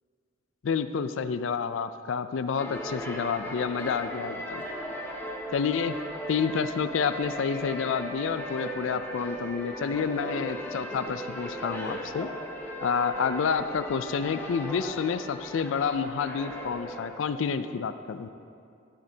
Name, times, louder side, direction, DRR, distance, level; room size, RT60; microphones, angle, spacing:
voice 1, 0.6-4.6 5.5-6.0 6.3-12.3 12.8-18.3, left 6 dB, 85° left, 12 dB, 0.4 m, -29 dB
sound 1, 2.6-17.1, equal, 10° left, 1.1 m, -37 dB
15.5 x 8.5 x 2.8 m, 2.6 s
head